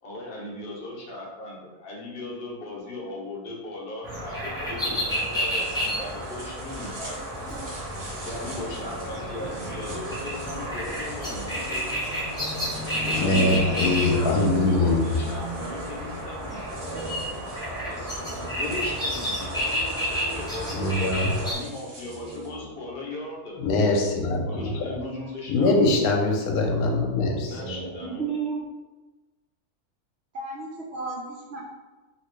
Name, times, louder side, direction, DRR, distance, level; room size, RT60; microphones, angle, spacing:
voice 1, 0.0-7.4 8.2-12.2 13.0-16.8 17.8-18.1 18.5-23.7 24.5-25.7 27.4-28.3, left 2 dB, 45° left, -3 dB, 0.9 m, -38 dB
sound 1, 4.0-21.5, equal, 5° left, 0.6 m, -30 dB
sound 2, 5.1-22.5, right 1 dB, 85° right, 1.5 m, -46 dB
sound 3, 9.3-12.1 12.3-13.5 13.9-19.3 20.2-21.5 22.0-23.3 23.7-25.2 25.5-26.8 27.3-28.6, right 1 dB, 55° right, 1.3 m, -42 dB
voice 2, 13.1-15.0 20.7-21.4 23.6-24.8 25.5-27.6, left 2 dB, 85° left, 1 dB, 1.1 m, -23 dB
voice 3, 28.0-28.6 30.3-31.6, right 5 dB, 70° right, -2 dB, 0.6 m, -32 dB
3.0 x 2.9 x 3.1 m, 1.2 s
omnidirectional pair, 1.6 m